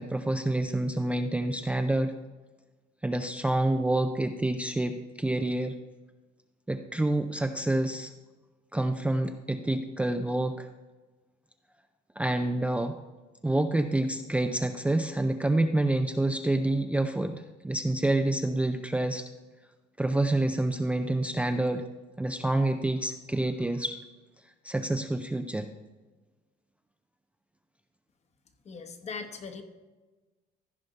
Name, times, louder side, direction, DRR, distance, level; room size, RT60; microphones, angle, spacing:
voice 1, 0.0-2.1 3.0-5.8 6.7-8.1 8.7-10.7 12.2-13.0 13.4-19.3 20.0-21.9 22.2-24.0 24.6-25.7, right 1 dB, 5° right, 6 dB, 0.4 m, -28 dB
voice 2, 28.7-29.6, left 5 dB, 40° left, 6 dB, 1.1 m, -39 dB
14.5 x 5.2 x 4.0 m, 1.2 s
cardioid pair, 110°, 17 cm